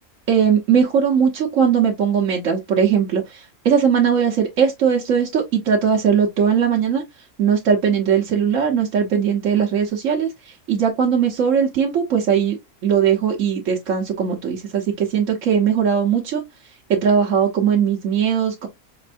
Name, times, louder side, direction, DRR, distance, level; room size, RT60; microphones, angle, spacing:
voice 1, 0.3-7.0 7.4-12.6 12.8-16.4 16.9-18.7, right 7 dB, 65° right, 1.3 m, -19 dB
5.3 x 3.2 x 2.5 m
omnidirectional pair, 1.5 m